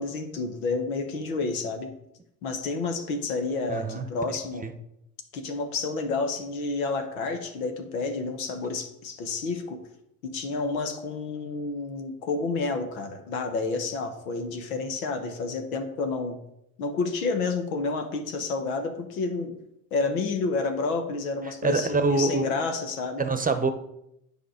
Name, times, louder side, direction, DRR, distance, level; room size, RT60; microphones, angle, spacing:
voice 1, 0.0-1.9 2.4-4.6 5.3-9.8 10.2-16.4 16.8-19.6 19.9-23.2, left 3 dB, 85° left, 6 dB, 1.2 m, -30 dB
voice 2, 3.7-4.1 4.6-4.7 21.6-22.6 23.2-23.7, right 3 dB, 20° right, 9 dB, 0.9 m, -25 dB
9.3 x 4.9 x 5.0 m, 0.81 s
hypercardioid pair, 65°, 41 cm